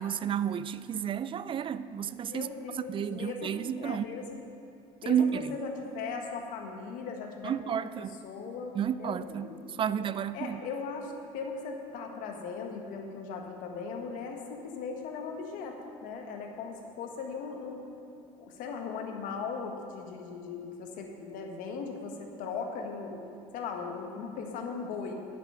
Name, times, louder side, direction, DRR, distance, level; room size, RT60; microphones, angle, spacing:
voice 1, 0.0-2.5 2.9-4.0 5.1-5.6 7.4-8.2 8.8-10.6, right 8 dB, 40° right, 0.4 m, -31 dB
voice 2, 2.3-4.4 5.0-9.6 10.3-15.8 16.0-17.8 18.4-23.2 23.5-25.1, left 5 dB, 75° left, 1.6 m, -38 dB
10.5 x 9.6 x 5.7 m
supercardioid pair, 95°, 14 cm